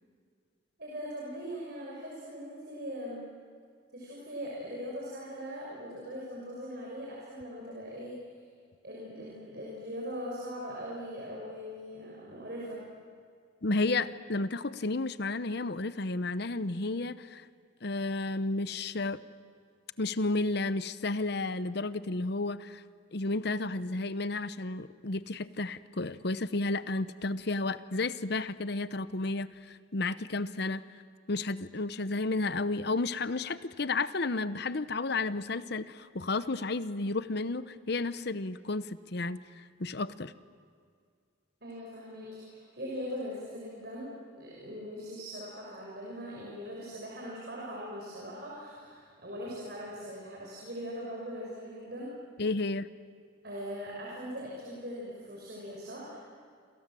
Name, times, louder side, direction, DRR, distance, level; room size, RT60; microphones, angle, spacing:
voice 1, 0.8-3.2 3.9-8.2 8.8-12.8 41.6-44.1 44.4-52.1 53.4-56.2, equal, 55° right, -4 dB, 6.3 m, -40 dB
voice 2, 13.6-17.4 17.8-19.2 20.0-22.8 23.1-30.8 31.3-39.4 39.8-40.3 52.4-52.9, left 3 dB, 55° left, 14 dB, 0.9 m, -32 dB
28.0 x 27.5 x 7.7 m, 2.1 s
head